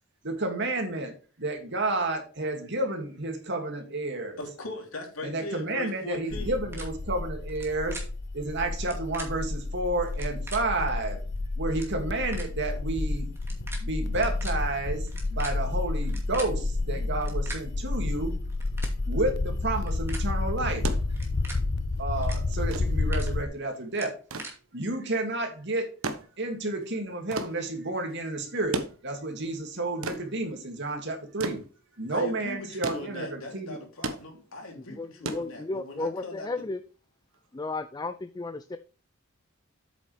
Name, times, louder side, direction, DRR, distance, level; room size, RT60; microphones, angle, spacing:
voice 1, 0.2-1.1 1.4-4.4 5.2-8.0 8.3-11.2 11.6-13.3 13.8-18.4 19.0-20.9 22.0-24.2 24.7-25.9 26.4-31.6 32.0-33.8, right 2 dB, 55° right, 4 dB, 2.4 m, -31 dB
voice 2, 4.4-6.6 32.1-36.5, left 2 dB, 85° left, 1 dB, 3.2 m, -39 dB
sound 1, 6.3-23.5, left 2 dB, 50° left, 0.7 m, -30 dB
sound 2, 6.7-6.8 7.5-7.7 7.9-8.0 8.8-9.3 10.1-10.6 11.4-11.5 11.7-11.9 12.3-12.5 13.4-13.8 14.1-14.5 15.1-16.5 17.2-17.6 18.5-18.9 19.7-20.2 21.1-21.6 22.2-22.4 22.7-23.3 23.9-24.5, right 2 dB, 10° right, 2.4 m, -41 dB
sound 3, 20.8-36.1 37.3-37.5, right 2 dB, 85° right, 1.2 m, -38 dB
voice 3, 34.7-36.8 37.5-38.8, left 3 dB, 20° left, 11 dB, 0.4 m, -34 dB
8.3 x 7.4 x 3.4 m, 0.36 s
head